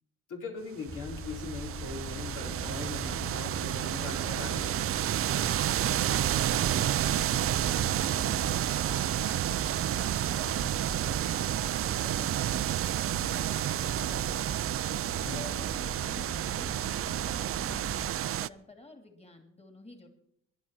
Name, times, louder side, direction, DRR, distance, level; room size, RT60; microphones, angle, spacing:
voice 1, 0.3-4.7 15.2-15.4, left 4 dB, 75° left, 0 dB, 4.2 m, -40 dB
sound 1, 0.9-18.1, left 2 dB, 40° left, 3.6 m, -43 dB
sound 2, 0.9-18.5, right 12 dB, 50° right, 0.4 m, -30 dB
voice 2, 5.7-14.7 15.2-20.1, left 2 dB, 20° left, 4 dB, 2.6 m, -51 dB
22.0 x 10.5 x 4.4 m, 0.74 s
cardioid pair, 90°, 30 cm